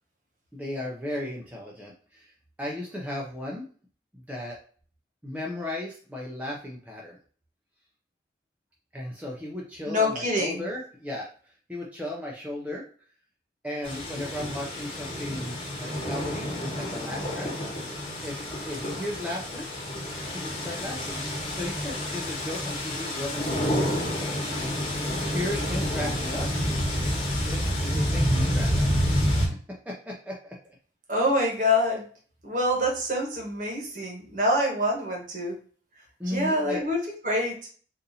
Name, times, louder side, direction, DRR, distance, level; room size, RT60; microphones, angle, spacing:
voice 1, 0.5-3.6 4.1-4.6 5.2-7.2 8.9-12.8 13.6-17.5 18.2-19.7 20.2-21.2 21.5-23.8 25.2-26.5 27.4-28.9 29.9-30.6 36.2-36.8, left 1 dB, 10° right, -3 dB, 0.5 m, -36 dB
voice 2, 9.9-10.7 31.1-32.0 32.4-35.6 36.3-37.7, left 1 dB, 45° right, 0 dB, 1.1 m, -26 dB
sound 1, 13.8-29.5, equal, 30° left, 1.2 m, -29 dB
4.0 x 2.6 x 2.6 m, 0.43 s
head